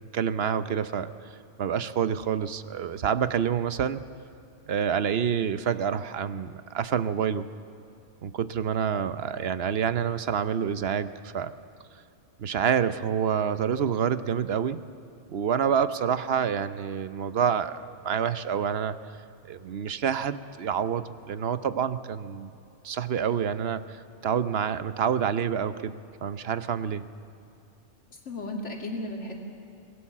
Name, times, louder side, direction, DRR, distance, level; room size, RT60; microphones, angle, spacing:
voice 1, 0.1-1.1 1.6-4.0 4.7-7.5 8.2-11.6 12.4-14.8 15.3-19.0 19.5-22.5 22.8-27.0, right 8 dB, 60° right, 13 dB, 1.0 m, -27 dB
voice 2, 28.1-29.4, left 1 dB, 85° left, 1 dB, 2.9 m, -35 dB
27.0 x 19.0 x 7.4 m, 2.7 s
omnidirectional pair, 1.2 m